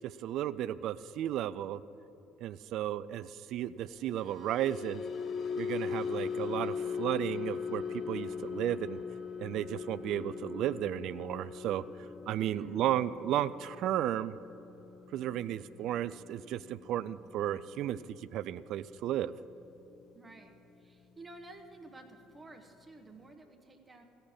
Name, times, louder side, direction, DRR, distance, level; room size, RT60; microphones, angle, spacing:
voice 1, 0.0-1.8 2.4-5.0 5.6-9.0 9.4-11.8 12.3-14.4 15.1-19.3, right 11 dB, 60° right, 16 dB, 0.3 m, -34 dB
sound 1, 4.0-20.4 20.7-21.0 21.4-21.6, left 6 dB, 45° left, 0.8 m, -41 dB
voice 2, 12.5-12.8 20.1-20.5 20.8-24.0, right 2 dB, 25° right, 3 dB, 1.3 m, -52 dB
15.0 x 6.5 x 8.7 m, 3.0 s
hypercardioid pair, 55°, 0 cm